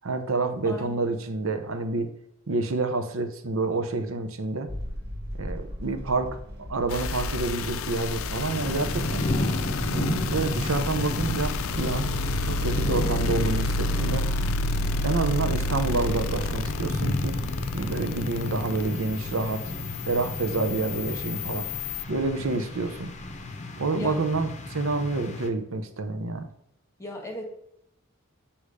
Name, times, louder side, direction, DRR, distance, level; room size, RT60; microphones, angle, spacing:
voice 1, 0.0-2.1 2.5-4.7 5.3-6.4 6.7-9.2 9.9-12.1 12.4-14.2 15.0-17.4 17.7-19.7 20.0-21.7 22.1-23.1 23.8-26.5, right 3 dB, 80° right, 7 dB, 0.8 m, -28 dB
voice 2, 0.6-1.1 24.0-24.2 27.0-27.5, left 2 dB, 15° left, 2 dB, 1.4 m, -36 dB
sound 1, 4.7-23.5, equal, 55° right, 1.2 m, -39 dB
sound 2, 6.9-22.0, left 2 dB, 80° left, 0.4 m, -31 dB
sound 3, 8.5-25.5, left 2 dB, 35° left, 0.7 m, -33 dB
8.4 x 2.9 x 4.9 m, 0.76 s
head